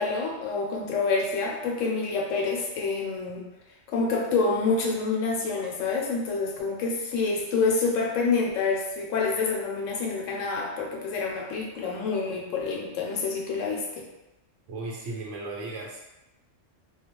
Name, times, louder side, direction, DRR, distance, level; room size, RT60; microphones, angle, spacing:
voice 1, 0.0-3.4 3.9-14.1, left 4 dB, 80° left, -1 dB, 0.9 m, -27 dB
voice 2, 14.7-16.0, right 2 dB, 75° right, -2 dB, 0.9 m, -35 dB
2.3 x 2.1 x 2.9 m, 0.97 s
omnidirectional pair, 1.3 m